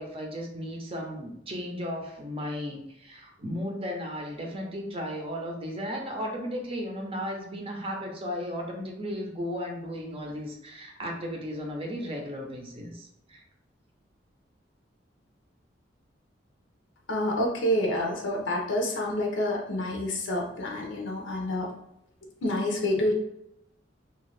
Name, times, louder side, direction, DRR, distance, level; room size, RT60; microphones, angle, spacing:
voice 1, 0.0-13.4, equal, 30° right, 1 dB, 0.6 m, -35 dB
voice 2, 17.1-21.7 22.2-23.1, left 1 dB, 85° left, -1 dB, 0.6 m, -28 dB
2.7 x 2.4 x 3.2 m, 0.80 s
head